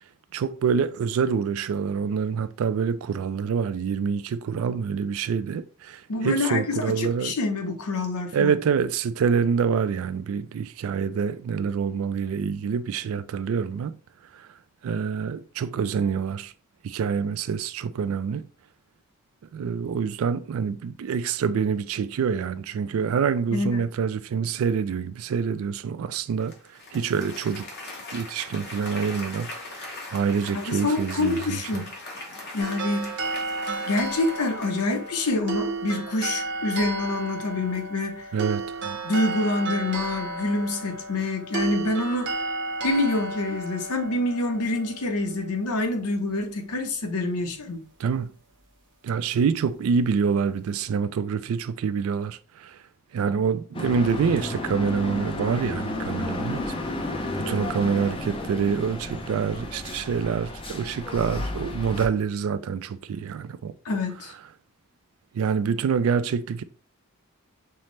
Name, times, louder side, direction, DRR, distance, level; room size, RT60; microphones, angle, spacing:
voice 1, 0.3-7.4 8.3-14.0 14.3-14.5 14.8-16.5 16.8-18.5 19.5-27.7 28.1-29.5 29.8-31.9 38.3-39.0 48.0-48.3 49.0-52.8 53.1-56.7 57.1-63.7 65.3-66.6, right 6 dB, 65° right, 0.3 m, -26 dB
voice 2, 6.1-8.5 23.5-23.8 30.7-31.9 32.5-33.1 33.9-38.3 39.0-42.4 42.8-47.8 63.8-64.3, left 2 dB, 85° left, 0.7 m, -26 dB
Applause, 26.4-35.3, left 2 dB, 50° left, 1.0 m, -40 dB
sound 1, 32.6-45.8, right 3 dB, 50° right, 0.7 m, -33 dB
sound 2, 53.7-62.1, left 2 dB, 25° left, 0.4 m, -32 dB
5.5 x 2.0 x 3.1 m
head